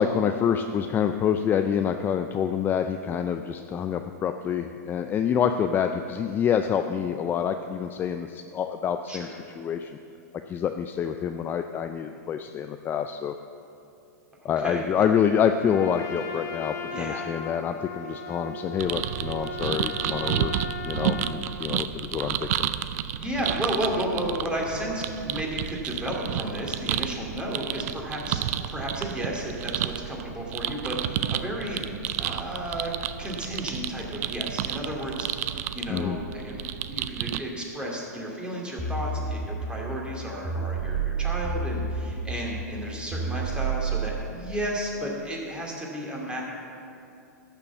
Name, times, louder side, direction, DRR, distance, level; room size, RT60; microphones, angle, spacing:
voice 1, 0.0-9.3 9.6-10.0 10.5-13.3 14.4-22.7 35.9-36.2, left 8 dB, 20° left, 7 dB, 0.4 m, -27 dB
voice 2, 14.4-14.8 16.9-17.3 23.2-31.8 32.2-32.9 33.2-46.4, equal, 10° right, -2 dB, 2.5 m, -33 dB
Trumpet, 15.6-21.4, left 3 dB, 75° left, 1.8 m, -37 dB
sound 1, 18.8-37.4, right 11 dB, 60° right, 0.5 m, -31 dB
sound 2, 38.8-44.1, right 4 dB, 30° right, 1.7 m, -30 dB
12.5 x 6.9 x 7.0 m, 2.6 s
hypercardioid pair, 120°, 9 cm